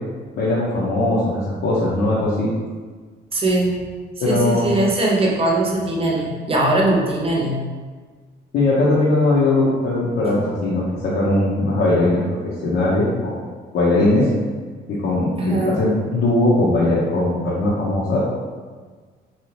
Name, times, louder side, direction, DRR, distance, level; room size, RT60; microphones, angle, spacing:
voice 1, 0.3-2.5 4.2-4.7 8.5-12.4 12.6-13.4 13.7-14.3 14.9-18.2, left 2 dB, 65° left, -8 dB, 0.8 m, -19 dB
voice 2, 3.3-3.8 4.2-7.7 15.4-15.8, right 2 dB, 30° right, -2 dB, 0.7 m, -20 dB
2.8 x 2.3 x 3.1 m, 1.5 s
cardioid pair, 90°, 20 cm